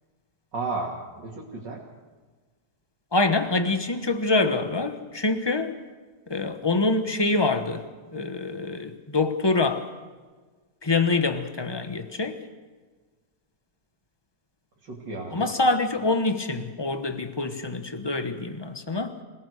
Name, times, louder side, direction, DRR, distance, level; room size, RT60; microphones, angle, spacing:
voice 1, 0.5-1.8 14.8-15.5, right 3 dB, 75° right, 3.1 m, -33 dB
voice 2, 3.1-5.8 6.3-7.9 8.1-9.9 10.8-12.4 15.3-19.2, left 3 dB, 15° left, 1.1 m, -25 dB
26.5 x 18.0 x 6.6 m
omnidirectional pair, 1.9 m